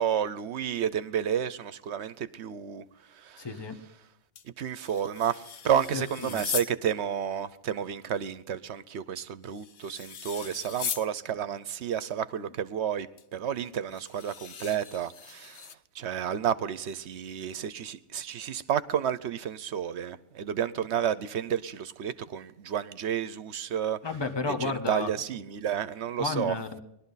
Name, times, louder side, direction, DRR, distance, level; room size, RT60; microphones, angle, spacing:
voice 1, 0.0-2.8 3.2-3.4 4.6-13.1 13.3-15.6 16.0-24.0 24.5-26.6, right 9 dB, 70° right, 1.0 m, -31 dB
voice 2, 3.4-3.7 5.9-6.4 24.0-25.1 26.2-26.8, left 4 dB, 20° left, 1.3 m, -32 dB
sound 1, 4.3-6.8 9.2-11.1 13.2-13.3 13.9-15.7, left 7 dB, 60° left, 1.0 m, -38 dB
20.5 x 12.0 x 4.0 m
omnidirectional pair, 1.2 m